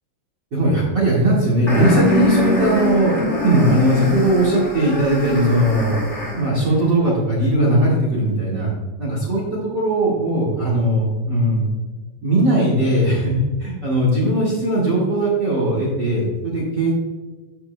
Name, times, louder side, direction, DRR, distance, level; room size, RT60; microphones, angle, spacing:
voice 1, 0.5-3.2 3.4-6.0 6.3-8.7 9.0-11.7 12.2-17.0, right 1 dB, 60° right, -4 dB, 1.1 m, -19 dB
sound 1, 1.7-6.6, equal, 35° left, 1.0 m, -22 dB
14.0 x 6.6 x 2.2 m, 1.3 s
omnidirectional pair, 5.1 m